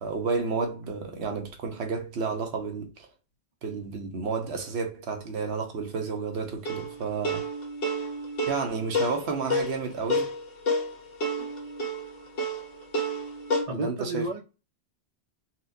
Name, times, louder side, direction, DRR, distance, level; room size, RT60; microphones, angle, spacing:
voice 1, 0.0-3.1 3.6-7.4 8.5-10.3 13.7-14.3, right 4 dB, 80° right, 1.0 m, -31 dB
sound 1, 6.7-13.6, equal, 65° left, 1.1 m, -30 dB
voice 2, 13.7-14.4, right 2 dB, 45° right, 0.6 m, -31 dB
4.2 x 2.1 x 2.6 m
omnidirectional pair, 1.1 m